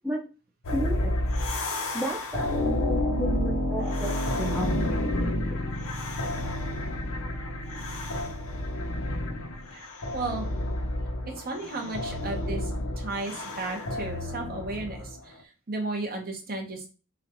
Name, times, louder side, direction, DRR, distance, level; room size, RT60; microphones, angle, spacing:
sound 1, 0.6-15.2, left 1 dB, 65° left, 0.9 m, -30 dB
voice 1, 0.7-1.2 1.9-4.8, right 1 dB, 5° right, -2 dB, 0.7 m, -33 dB
voice 2, 10.1-10.5 11.3-16.9, right 2 dB, 45° right, 1 dB, 1.2 m, -34 dB
6.3 x 2.5 x 3.1 m, 0.33 s
head